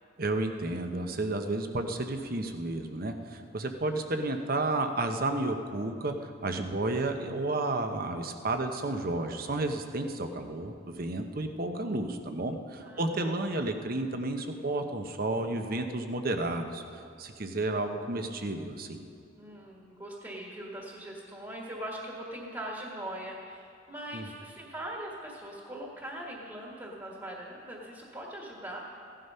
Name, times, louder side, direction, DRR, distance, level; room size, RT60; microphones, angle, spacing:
voice 1, 0.2-19.0 24.1-24.3, right 2 dB, 50° right, 6 dB, 1.0 m, -32 dB
voice 2, 12.8-13.5 19.4-28.8, right 1 dB, 20° right, -2 dB, 1.7 m, -41 dB
16.0 x 11.5 x 5.6 m, 2.5 s
head